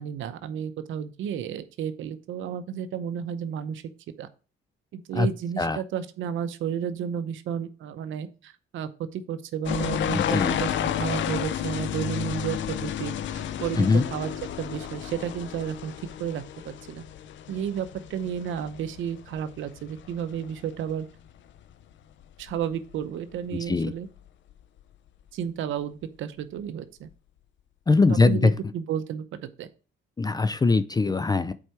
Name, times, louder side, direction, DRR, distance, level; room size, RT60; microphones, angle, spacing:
voice 1, 0.0-3.8 4.2-4.3 4.9-15.9 16.2-17.0 17.5-21.1 22.4-24.1 25.3-27.1 28.1-29.2 29.6-29.7, right 8 dB, 80° right, 11 dB, 0.7 m, -32 dB
sound 1, 9.7-21.0 21.3-21.8 22.2-23.0 23.3-23.4 24.2-24.3 24.5-24.6, left 9 dB, 70° left, 0.6 m, -32 dB
voice 2, 10.1-10.5 13.8-14.1 23.5-23.9 27.9-28.5 30.2-31.5, left 3 dB, 20° left, 15 dB, 0.4 m, -22 dB
7.6 x 4.7 x 4.5 m, 0.35 s
cardioid pair, 90°, 20 cm